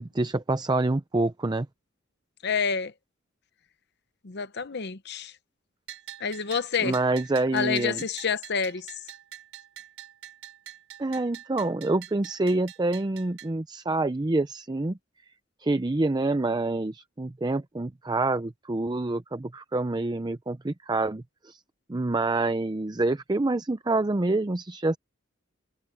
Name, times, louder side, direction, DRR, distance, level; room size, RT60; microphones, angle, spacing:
voice 1, 0.0-1.7 6.8-8.0 11.0-15.0 15.6-21.6 21.9-25.0, right 2 dB, 20° right, 0.5 m, -27 dB
voice 2, 2.4-2.9 4.2-5.3 6.2-7.0 7.5-8.9, left 6 dB, 60° left, 0.9 m, -28 dB
Bell, 5.9-13.5, right 11 dB, 75° right, 5.0 m, -45 dB
head